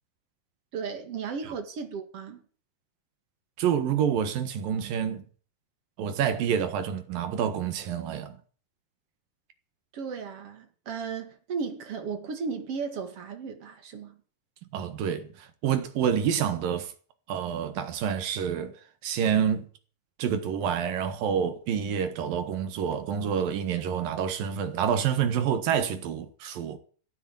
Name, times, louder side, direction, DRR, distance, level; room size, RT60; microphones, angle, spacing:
voice 1, 0.7-2.4 9.9-14.2, right 5 dB, 45° right, 2.4 m, -35 dB
voice 2, 3.6-5.2 6.0-8.4 14.7-16.9 17.3-18.7 19.0-19.7 20.2-26.8, right 8 dB, 70° right, 3.2 m, -28 dB
15.0 x 9.2 x 7.7 m
omnidirectional pair, 4.3 m